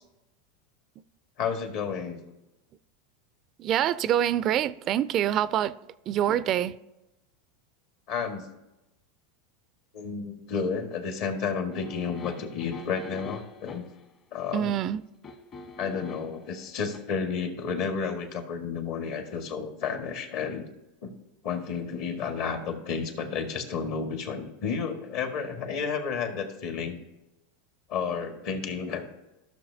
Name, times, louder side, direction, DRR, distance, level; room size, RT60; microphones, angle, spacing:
voice 1, 1.4-2.2 8.1-8.5 9.9-13.9 14.3-14.8 15.8-20.7 21.0-21.1 21.4-27.0 27.9-29.1, left 6 dB, 60° left, 1.7 m, -31 dB
voice 2, 3.6-5.7 6.1-6.7 14.5-15.0, right 10 dB, 45° right, 0.3 m, -25 dB
sound 1, 11.7-14.0 15.2-16.4 16.9-17.0, left 3 dB, 35° left, 1.2 m, -44 dB
14.5 x 6.4 x 2.8 m
hypercardioid pair, 105°, 0 cm